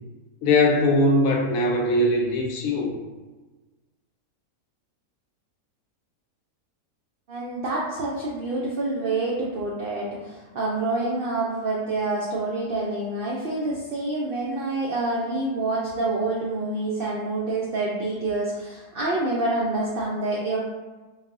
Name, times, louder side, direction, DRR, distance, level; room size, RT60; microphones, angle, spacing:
voice 1, 0.4-2.9, left 1 dB, 75° left, 0 dB, 1.0 m, -21 dB
voice 2, 7.3-20.6, right 2 dB, 85° right, -4 dB, 0.4 m, -27 dB
3.9 x 2.0 x 2.5 m, 1.2 s
omnidirectional pair, 1.5 m